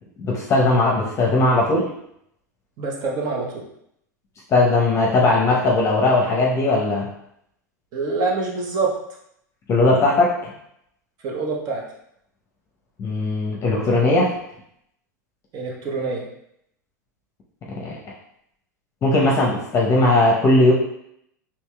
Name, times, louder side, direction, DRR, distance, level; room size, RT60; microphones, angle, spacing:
voice 1, 0.2-1.9 4.5-7.1 9.7-10.5 13.0-14.3 17.8-18.0 19.0-20.7, left 2 dB, 30° left, -2 dB, 0.8 m, -18 dB
voice 2, 2.8-3.6 7.9-8.9 11.2-11.8 15.5-16.2, right 4 dB, 40° right, -1 dB, 0.9 m, -25 dB
4.3 x 2.9 x 2.3 m, 0.75 s
hypercardioid pair, 90°, 10 cm